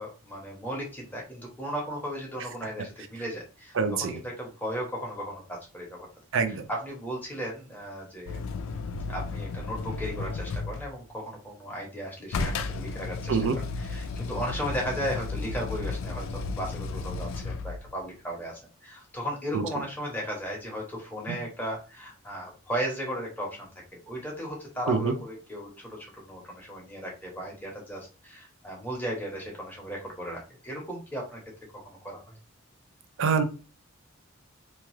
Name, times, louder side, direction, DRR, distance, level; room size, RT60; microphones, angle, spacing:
voice 1, 0.0-6.1 6.5-8.4 9.1-31.4 32.0-32.3, equal, 10° left, -2 dB, 0.9 m, -36 dB
voice 2, 3.8-4.2 6.3-6.7 13.3-13.6 19.5-19.6 21.3-21.4 24.9-25.1 33.2-33.4, right 5 dB, 65° right, 9 dB, 0.4 m, -25 dB
sound 1, 8.3-11.0 12.3-17.9 20.7-20.8, left 4 dB, 65° left, 0.3 m, -33 dB
2.7 x 2.3 x 3.1 m, 0.34 s
head